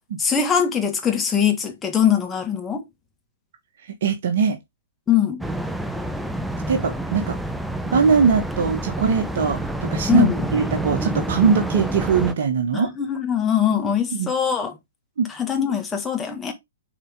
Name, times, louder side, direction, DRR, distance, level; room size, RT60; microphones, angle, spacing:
voice 1, 0.2-2.9 5.1-5.4 10.1-10.4 12.7-14.8 15.3-16.5, left 8 dB, 15° left, 1.7 m, -22 dB
voice 2, 4.0-4.6 6.7-7.4 7.9-12.9 14.1-14.3 15.2-15.3, right 6 dB, 55° right, 1.4 m, -21 dB
sound 1, 5.4-12.3, right 1 dB, 5° right, 0.6 m, -28 dB
7.1 x 4.2 x 3.6 m
figure-of-eight pair, 120°, 0 cm